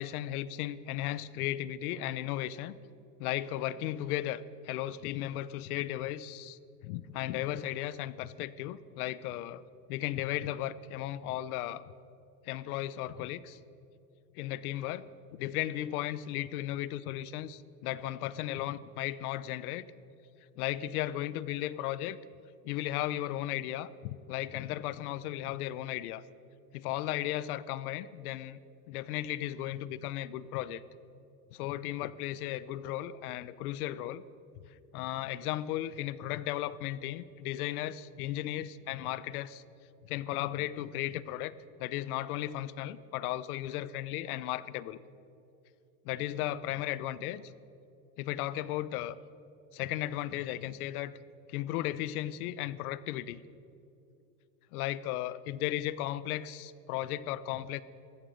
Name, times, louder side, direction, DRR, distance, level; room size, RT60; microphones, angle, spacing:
voice 1, 0.0-2.7 3.2-9.6 9.9-11.8 12.4-13.6 14.3-15.0 15.3-19.8 20.6-22.2 22.6-26.2 26.7-28.6 28.9-30.8 31.5-34.2 34.9-39.6 40.0-41.5 41.8-45.0 46.0-47.4 48.2-49.2 49.7-51.2 51.5-53.4 54.7-57.8, left 13 dB, 65° left, 18 dB, 0.8 m, -35 dB
15.5 x 14.0 x 6.5 m, 2.7 s
supercardioid pair, 150°, 48 cm